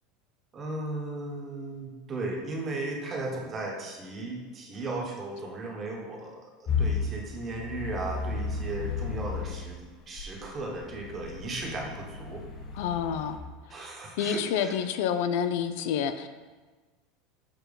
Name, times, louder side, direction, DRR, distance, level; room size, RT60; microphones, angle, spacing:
voice 1, 0.5-6.3 6.6-9.8 10.1-12.4 13.7-14.7, right 2 dB, 25° right, 0 dB, 1.1 m, -36 dB
sound 1, 6.7-9.6 10.2-13.4, left 5 dB, 35° left, 1.0 m, -33 dB
voice 2, 12.7-13.4 14.2-16.3, left 8 dB, 70° left, 10 dB, 0.4 m, -28 dB
6.8 x 2.9 x 5.2 m, 1.3 s
supercardioid pair, 145°, 0 cm